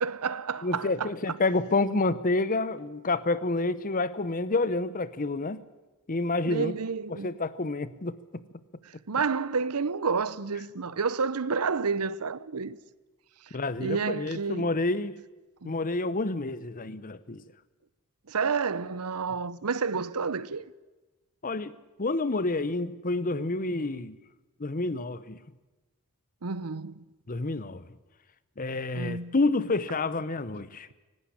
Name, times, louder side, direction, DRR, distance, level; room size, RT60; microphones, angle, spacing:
voice 1, 0.0-1.1 6.5-7.3 9.1-12.8 13.8-14.7 15.6-15.7 18.3-20.7 26.4-27.0 28.9-29.3, right 5 dB, 85° right, 0.8 m, -30 dB
voice 2, 0.6-5.6 6.1-6.7 7.1-8.4 13.5-15.2 15.6-17.4 21.4-24.2 24.6-25.4 27.3-27.8 28.6-30.9, left 2 dB, 40° left, 0.8 m, -29 dB
25.5 x 12.0 x 9.9 m
head